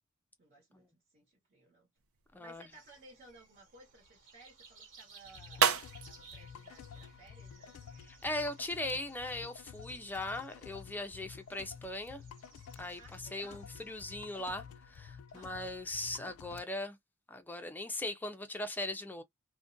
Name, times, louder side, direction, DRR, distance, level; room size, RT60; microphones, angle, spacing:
voice 1, 0.4-1.9 2.4-5.7 6.1-7.8 10.5-10.6 13.0-13.6 15.3-15.7, right 2 dB, 45° right, 1.0 m, -59 dB
sound 1, 2.0-7.9, right 7 dB, 80° right, 0.5 m, -37 dB
voice 2, 2.3-2.7 8.1-12.2 12.8-13.0 13.3-17.0 17.3-19.2, left 2 dB, 10° left, 0.5 m, -39 dB
sound 2, 2.7-14.2, right 5 dB, 60° right, 1.3 m, -60 dB
sound 3, 5.2-16.6, left 7 dB, 75° left, 0.3 m, -51 dB
2.5 x 2.2 x 2.5 m
head